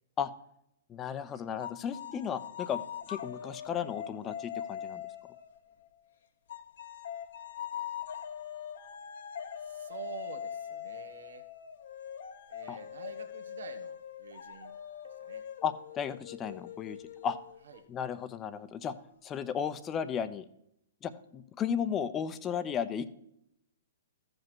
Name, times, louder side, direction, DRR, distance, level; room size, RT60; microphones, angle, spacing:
voice 1, 0.9-5.0 12.7-12.8 15.6-17.0 17.2-17.4 17.9-18.9 19.2-20.4 21.0-23.1, left 8 dB, 20° left, 12 dB, 0.7 m, -34 dB
sound 1, 1.6-6.0 6.5-17.8, left 9 dB, 65° left, 1.1 m, -42 dB
voice 2, 9.6-11.4 12.5-14.8 15.1-15.4 17.6-17.8, right 6 dB, 75° right, 6 dB, 1.4 m, -47 dB
14.0 x 5.3 x 6.2 m, 0.78 s
hypercardioid pair, 125°, 0 cm